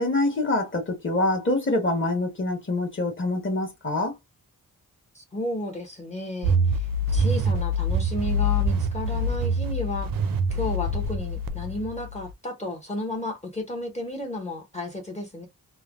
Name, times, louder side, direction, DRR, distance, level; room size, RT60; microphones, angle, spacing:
voice 1, 0.0-4.1, left 2 dB, 35° left, 1.1 m, -25 dB
voice 2, 5.1-10.1 10.5-15.5, left 1 dB, 20° left, 0.6 m, -33 dB
sound 1, 6.4-12.3, equal, 70° right, 0.5 m, -25 dB
3.1 x 2.0 x 2.4 m
wide cardioid pair, 145°, 35 cm